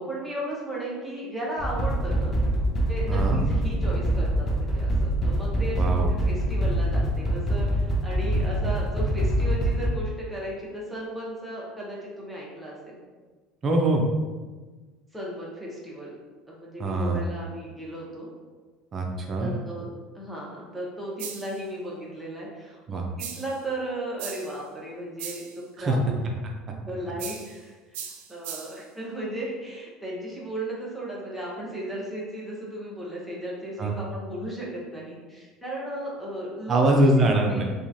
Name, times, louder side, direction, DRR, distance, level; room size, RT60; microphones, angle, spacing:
voice 1, 0.0-2.3 2.9-13.0 15.1-16.2 16.5-18.3 19.4-19.9 20.1-25.4 25.8-26.2 26.9-27.8 28.3-37.1 37.5-37.6, right 1 dB, 5° right, -5 dB, 0.9 m, -35 dB
sound 1, 1.6-9.9, right 1 dB, 25° left, 0.6 m, -25 dB
voice 2, 3.1-3.4 5.8-6.1 13.6-14.0 16.8-17.2 18.9-19.5 22.9-23.0 25.8-26.0 33.8-33.9 36.7-37.6, right 2 dB, 35° right, 1 dB, 0.5 m, -23 dB
sound 2, 21.2-21.6 23.2-23.6 24.2-24.6 25.2-25.6 27.2-27.6 27.9-28.9, right 8 dB, 85° right, 0.3 m, -38 dB
3.0 x 2.4 x 2.6 m, 1.3 s
supercardioid pair, 105°, 0 cm